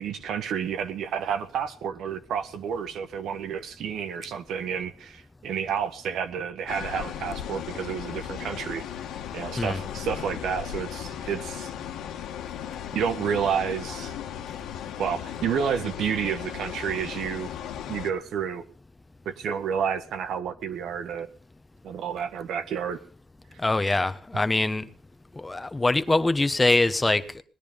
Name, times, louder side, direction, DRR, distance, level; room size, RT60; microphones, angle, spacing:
voice 1, 0.0-8.8 9.3-11.7 12.9-14.1 15.0-17.5 17.9-18.6 19.2-21.3 21.8-23.0, right 7 dB, 75° right, 1.4 m, -30 dB
sound 1, 6.7-18.1, left 9 dB, 90° left, 1.5 m, -36 dB
voice 2, 23.6-24.9 25.4-27.4, left 2 dB, 15° left, 1.2 m, -23 dB
19.5 x 10.5 x 5.3 m
cardioid pair, 90°, 0 cm